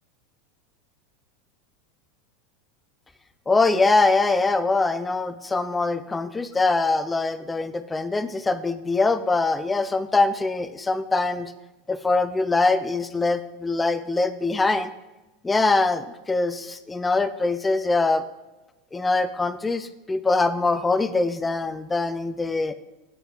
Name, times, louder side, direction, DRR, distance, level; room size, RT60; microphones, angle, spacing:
voice 1, 3.5-11.5 11.9-14.9 15.4-18.2 18.9-22.7, left 3 dB, 15° left, 13 dB, 0.5 m, -23 dB
8.4 x 6.7 x 6.4 m, 1.1 s
supercardioid pair, 120°, 0 cm